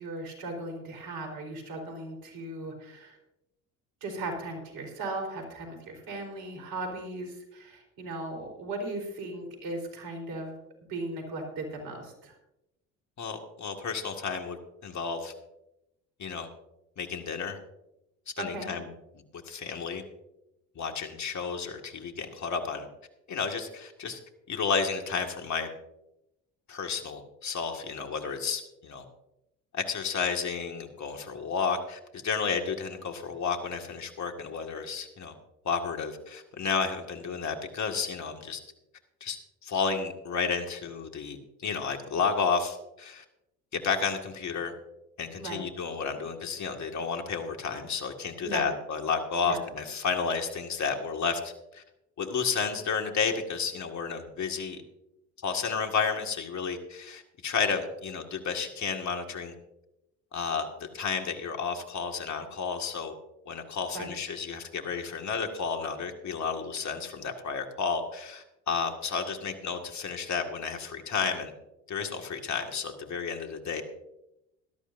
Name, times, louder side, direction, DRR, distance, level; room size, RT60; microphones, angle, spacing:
voice 1, 0.0-3.2 4.0-10.6 10.9-12.3 18.4-18.7 45.4-45.7 48.4-48.7 49.4-49.6 63.9-64.1, right 2 dB, 65° right, 4 dB, 4.3 m, -37 dB
voice 2, 13.2-15.3 16.2-16.5 17.0-17.6 18.4-18.9 19.5-20.0 20.8-22.9 23.3-24.2 24.5-25.7 26.7-29.0 29.7-35.3 35.6-38.6 39.2-43.2 43.7-44.7 45.2-51.8 52.2-54.8 55.4-59.5 60.3-63.1 63.5-71.5 71.9-73.8, left 5 dB, 45° left, 4 dB, 2.1 m, -32 dB
18.0 x 12.5 x 2.7 m, 0.87 s
hypercardioid pair, 60°, 38 cm